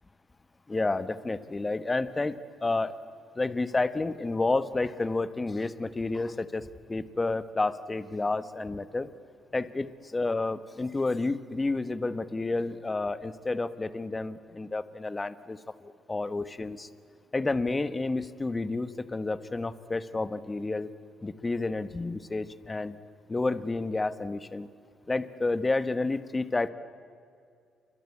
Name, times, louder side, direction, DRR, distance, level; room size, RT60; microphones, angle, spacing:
voice 1, 0.7-2.9 3.3-9.1 9.5-16.9 17.3-20.9 21.2-23.0 23.3-24.7 25.1-26.7, left 3 dB, 20° left, 12 dB, 1.3 m, -30 dB
28.5 x 23.5 x 8.6 m, 2.3 s
cardioid pair, 90°, 0 cm